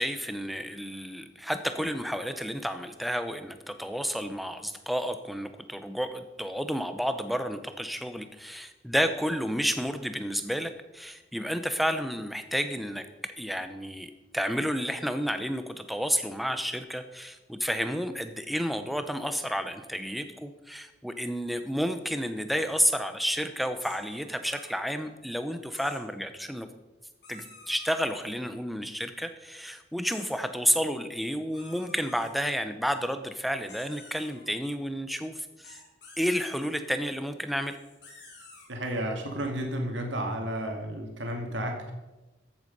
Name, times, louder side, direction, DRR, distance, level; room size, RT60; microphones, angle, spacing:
voice 1, 0.0-26.7 27.3-35.8 36.2-37.8, equal, ahead, 8 dB, 0.7 m, -31 dB
sound 1, 23.8-24.7 25.7-26.0 27.2-28.0 30.0-30.3 31.5-32.3 33.7-34.4 35.6-36.7 37.6-38.7, left 3 dB, 60° left, 5.0 m, -50 dB
voice 2, 38.7-41.9, right 1 dB, 75° right, 3 dB, 2.3 m, -32 dB
14.0 x 8.1 x 5.4 m, 1.1 s
head